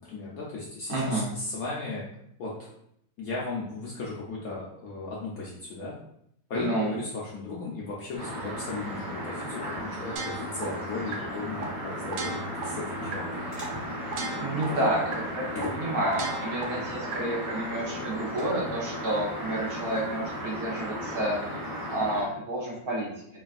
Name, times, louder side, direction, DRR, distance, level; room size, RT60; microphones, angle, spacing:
voice 1, 0.1-2.1 2.4-2.7 3.2-5.9 6.5-13.3 14.7-14.8 15.5-15.8, left 3 dB, 70° left, -5 dB, 0.8 m, -36 dB
voice 2, 0.9-1.3 6.5-7.0 14.4-15.0 15.3-21.4 21.9-23.4, right 1 dB, 65° right, -4 dB, 1.2 m, -30 dB
sound 1, 8.2-22.2, equal, 35° right, 0.5 m, -35 dB
sound 2, 10.2-10.6 11.1-11.2 11.6-11.7 12.1-12.6 13.1-13.2 13.6-13.7 14.1-14.6 15.1-15.2 15.6-15.7 16.1-16.6 17.1-17.2, right 5 dB, 85° right, 1.3 m, -35 dB
3.2 x 2.3 x 2.3 m, 0.74 s
omnidirectional pair, 1.9 m